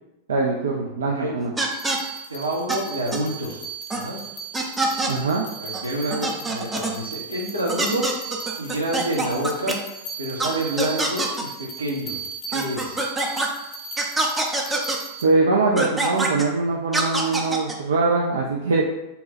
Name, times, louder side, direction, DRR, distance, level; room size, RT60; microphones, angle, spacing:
voice 1, 0.3-1.5 5.1-5.5 15.2-18.9, right 3 dB, 65° right, -1 dB, 0.4 m, -22 dB
voice 2, 1.0-1.3 2.3-3.6 3.9-4.2 5.6-8.1 8.5-9.7 10.2-12.2 12.5-13.0, right 1 dB, 85° right, -3 dB, 0.9 m, -28 dB
sound 1, 1.6-2.0 2.7-2.8 3.1-3.2 3.9-4.0 4.5-5.1 5.7-5.8 6.1-6.9 7.7-9.7 10.4-10.5 10.8-11.4 12.5-13.5 14.0-15.0 15.8-16.4 16.9-17.7, right 2 dB, 10° right, 0.6 m, -24 dB
sound 2, 1.7-15.2, right 5 dB, 45° left, 0.6 m, -37 dB
4.0 x 2.2 x 4.1 m, 0.95 s
figure-of-eight pair, 90°, 0 cm